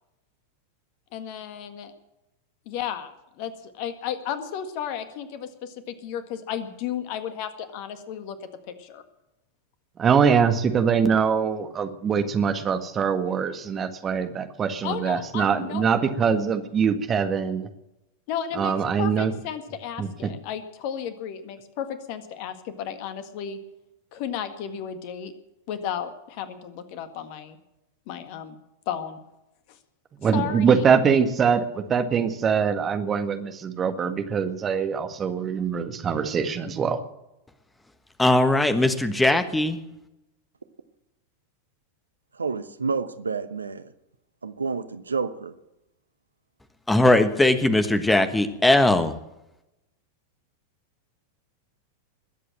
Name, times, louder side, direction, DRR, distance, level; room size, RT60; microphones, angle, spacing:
voice 1, 1.1-1.9 2.6-3.1 3.4-8.4 8.8-9.0 14.8-15.9 18.3-23.6 24.1-25.3 25.7-27.6 28.1-28.5 28.8-29.2 30.3-30.9, left 9 dB, 45° left, 1.7 m, -33 dB
voice 2, 10.0-17.7 18.5-19.3 20.0-20.3 30.2-37.0, right 6 dB, 25° right, 1.7 m, -23 dB
voice 3, 38.2-39.8 46.9-49.2, left 1 dB, 5° left, 1.4 m, -19 dB
voice 4, 42.3-43.9 44.4-45.5, right 4 dB, 75° right, 0.9 m, -29 dB
21.0 x 8.3 x 7.5 m
figure-of-eight pair, 90°, 0 cm